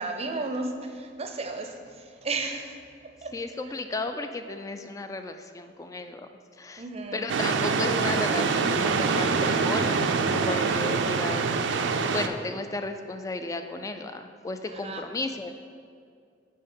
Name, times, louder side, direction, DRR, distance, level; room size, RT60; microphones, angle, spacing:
voice 1, 0.0-2.8 3.2-3.3 6.8-7.4 14.7-15.0, right 3 dB, 35° right, 4 dB, 0.5 m, -33 dB
voice 2, 3.3-6.3 6.6-6.8 7.1-15.5, left 2 dB, 20° left, 7 dB, 0.3 m, -34 dB
sound 1, 7.3-12.3, right 4 dB, 90° right, 0.4 m, -25 dB
5.5 x 4.4 x 5.4 m, 2.2 s
head